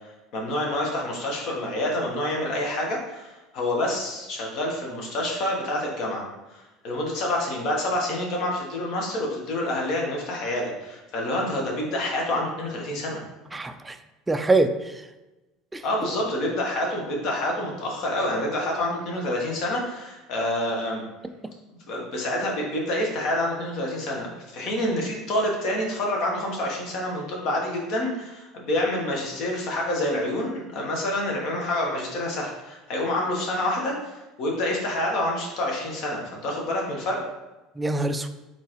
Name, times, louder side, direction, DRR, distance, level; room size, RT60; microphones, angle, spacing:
voice 1, 0.3-6.2 6.5-13.2 15.8-21.0 21.9-37.2, left 1 dB, 50° left, -1 dB, 1.2 m, -27 dB
voice 2, 13.5-14.0 14.3-15.1 15.7-15.8 37.8-38.3, right 2 dB, 15° right, 8 dB, 0.4 m, -24 dB
4.4 x 3.9 x 3.1 m, 1.1 s
figure-of-eight pair, 70°, 0 cm